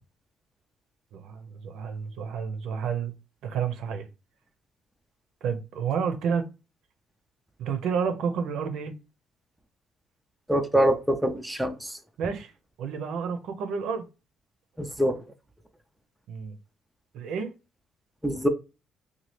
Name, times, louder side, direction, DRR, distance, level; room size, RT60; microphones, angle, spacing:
voice 1, 1.1-3.1 3.4-4.1 5.4-6.4 7.6-8.9 12.2-12.5 12.8-14.1 16.3-16.6 17.1-17.5, right 6 dB, 75° right, 0.6 m, -30 dB
voice 2, 10.5-11.9 14.8-15.2 18.2-18.5, equal, 5° right, 0.4 m, -24 dB
2.9 x 2.3 x 3.0 m
cardioid pair, 115°, 0 cm